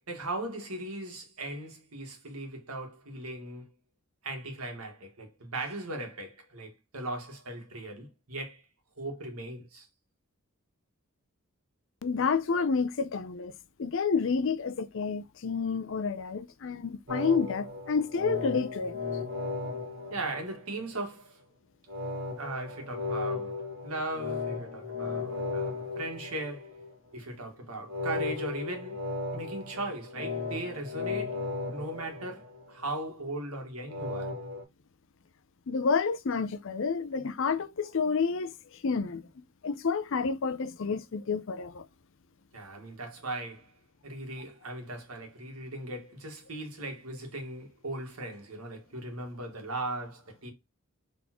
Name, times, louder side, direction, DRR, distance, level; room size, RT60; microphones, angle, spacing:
voice 1, 0.1-3.7 4.2-8.6 9.0-9.9 20.1-21.4 22.4-26.7 27.1-34.4 42.5-43.7 44.0-50.5, right 2 dB, 80° right, 1.7 m, -38 dB
voice 2, 12.0-13.5 13.8-19.0 35.7-38.5 38.8-39.2 39.6-41.8, left 5 dB, 60° left, 0.5 m, -29 dB
sound 1, 17.1-20.9 21.9-26.9 27.9-32.9 33.9-34.6, left 3 dB, 55° right, 1.8 m, -36 dB
4.0 x 3.7 x 2.9 m
head